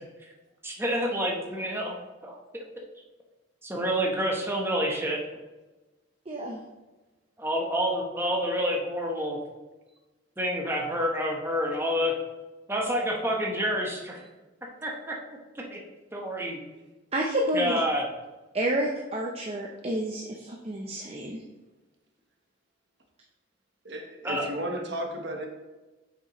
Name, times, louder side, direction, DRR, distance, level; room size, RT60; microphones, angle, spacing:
voice 1, 0.6-2.0 2.2-2.4 3.6-5.2 7.4-9.4 10.4-12.1 12.7-14.2 14.8-15.2 15.7-15.8 16.1-16.6 17.5-18.0 24.2-24.5, equal, 10° right, -1 dB, 1.0 m, -28 dB
voice 2, 6.3-6.6 17.1-17.7 18.5-21.4, right 1 dB, 30° right, 0 dB, 0.6 m, -29 dB
voice 3, 23.8-25.5, equal, 60° right, 2 dB, 1.1 m, -34 dB
7.4 x 6.1 x 3.1 m, 1.2 s
head